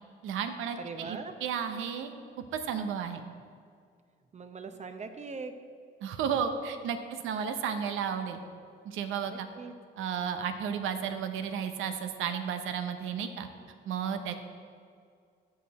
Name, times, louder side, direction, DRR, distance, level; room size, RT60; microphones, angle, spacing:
voice 1, 0.2-2.1 2.5-3.2 6.0-8.4 8.8-9.5 10.0-13.5 13.9-14.3, right 7 dB, 90° right, 8 dB, 0.8 m, -33 dB
voice 2, 0.8-1.3 4.3-5.5 9.2-9.7, right 4 dB, 35° right, 8 dB, 0.8 m, -41 dB
14.5 x 4.9 x 4.1 m, 2.1 s
cardioid pair, 90°, 20 cm